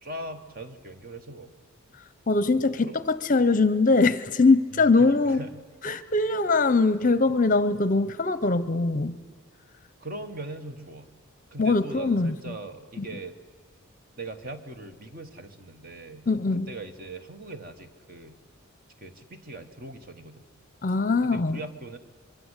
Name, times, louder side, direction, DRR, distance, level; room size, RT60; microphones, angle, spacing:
voice 1, 0.0-1.5 2.8-3.0 4.7-5.5 10.0-11.1 11.5-13.4 14.2-16.3 16.7-18.4 19.0-20.5 21.2-22.0, right 2 dB, 40° right, 8 dB, 1.4 m, -40 dB
voice 2, 2.3-5.4 5.8-9.2 11.6-12.5 13.0-13.1 16.3-16.7 20.8-21.6, left 3 dB, 35° left, 15 dB, 0.7 m, -22 dB
25.0 x 23.0 x 8.2 m, 1.4 s
head